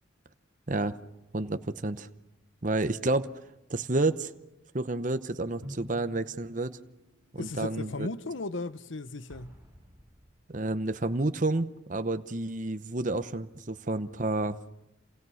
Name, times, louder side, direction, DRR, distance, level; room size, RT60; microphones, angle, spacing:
voice 1, 1.3-2.1 2.6-3.3 3.7-4.3 4.7-6.8 7.3-8.1 10.5-14.6, right 2 dB, 40° right, 0.8 m, -30 dB
Drum, 5.6-7.8, equal, 90° right, 2.4 m, -48 dB
voice 2, 7.4-9.6, left 2 dB, 75° left, 0.9 m, -36 dB
Explosion, 9.3-11.0, equal, 15° right, 7.0 m, -55 dB
29.0 x 28.0 x 6.4 m
head